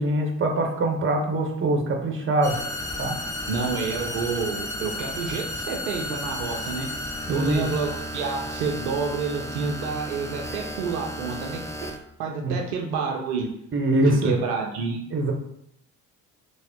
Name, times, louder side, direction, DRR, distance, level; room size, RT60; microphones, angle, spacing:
voice 1, 0.0-2.6 3.0-3.2 7.3-7.6 12.4-12.6 13.7-14.3 15.1-15.3, right 1 dB, 30° right, 3 dB, 0.8 m, -23 dB
sound 1, 2.4-12.0, left 1 dB, 10° left, 0.3 m, -33 dB
voice 2, 3.5-6.9 7.3-11.6 12.2-13.5 14.2-15.0, right 5 dB, 80° right, 1 dB, 0.6 m, -29 dB
3.3 x 2.0 x 3.6 m, 0.74 s
figure-of-eight pair, 45°, 44 cm